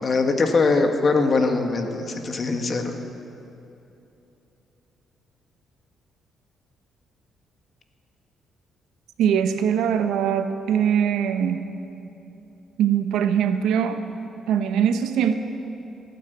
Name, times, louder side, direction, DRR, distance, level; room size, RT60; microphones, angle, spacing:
voice 1, 0.0-2.9, left 3 dB, 40° left, 5 dB, 1.6 m, -22 dB
voice 2, 9.2-11.7 12.8-14.0 14.5-15.3, right 8 dB, 85° right, 8 dB, 1.0 m, -22 dB
16.5 x 9.8 x 8.2 m, 2.9 s
cardioid pair, 90°, 0 cm